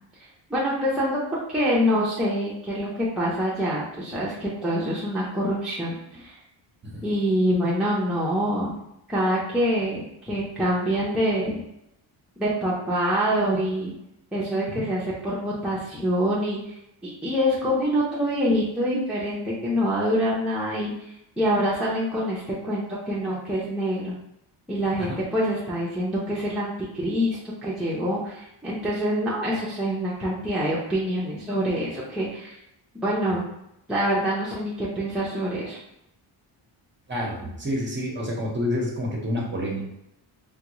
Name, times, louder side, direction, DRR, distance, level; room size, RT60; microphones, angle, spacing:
voice 1, 0.5-1.2 1.5-6.3 7.0-8.7 9.1-11.6 12.4-13.9 14.3-16.6 17.0-20.9 21.4-24.1 24.7-32.6 33.0-33.4 33.9-35.8, equal, ahead, -7 dB, 0.6 m, -25 dB
voice 2, 37.1-39.8, left 1 dB, 25° right, -2 dB, 0.9 m, -28 dB
3.6 x 2.3 x 2.9 m, 0.82 s
cardioid pair, 130°, 49 cm